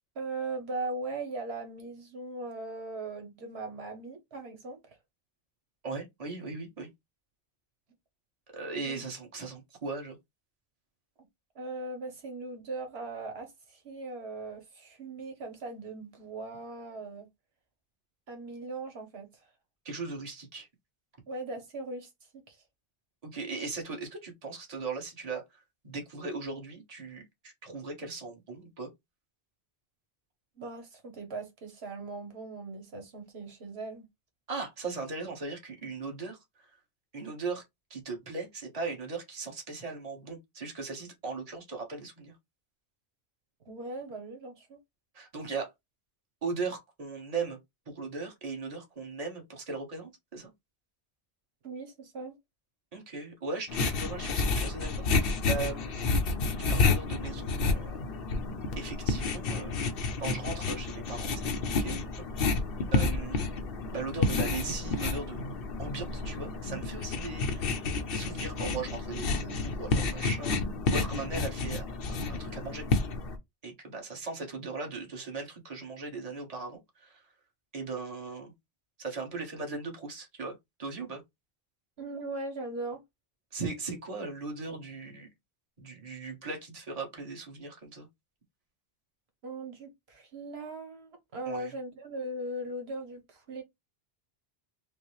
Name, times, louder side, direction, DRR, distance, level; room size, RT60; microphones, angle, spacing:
voice 1, 0.1-5.0 8.9-9.0 11.5-17.3 18.3-19.3 21.3-22.1 22.5-22.6 30.6-34.1 43.6-44.8 51.6-52.4 82.0-83.0 89.4-93.6, right 2 dB, 85° right, 1.3 m, -39 dB
voice 2, 5.8-6.9 8.5-10.2 19.8-20.7 23.2-28.9 34.5-36.8 37.1-37.6 37.9-42.3 45.1-45.7 46.4-47.6 47.9-50.5 52.9-56.0 56.6-58.0 58.8-59.7 60.2-62.6 62.9-63.4 63.9-65.4 65.8-67.7 68.1-70.6 70.9-72.8 73.6-77.2 77.7-78.5 79.0-81.2 83.5-85.3 85.8-88.1 91.4-91.7, right 4 dB, 40° right, 1.3 m, -38 dB
sound 1, 53.7-73.4, left 4 dB, 65° left, 0.9 m, -30 dB
5.1 x 2.1 x 3.1 m
omnidirectional pair, 1.0 m